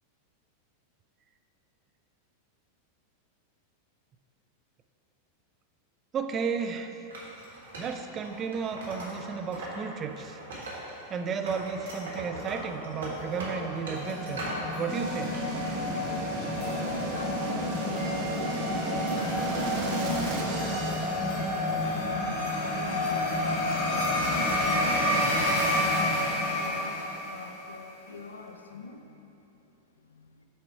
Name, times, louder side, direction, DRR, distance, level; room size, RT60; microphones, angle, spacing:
voice 1, 6.1-6.9 7.8-10.4 11.1-14.4 14.8-15.4, right 6 dB, 25° right, 6 dB, 0.4 m, -33 dB
Wood, 7.1-9.8 10.1-11.1 11.4-14.7 15.0-15.7, right 1 dB, 65° right, 1.5 m, -39 dB
sound 1, 13.1-27.7, left 1 dB, 40° left, 1.3 m, -29 dB
sound 2, 14.9-21.8, right 2 dB, 40° right, 1.0 m, -34 dB
voice 2, 16.7-23.2 23.8-29.2 30.0-30.4, left 3 dB, 75° left, 5 dB, 0.5 m, -43 dB
7.5 x 4.3 x 4.6 m, 3.0 s
figure-of-eight pair, 90°, 0 cm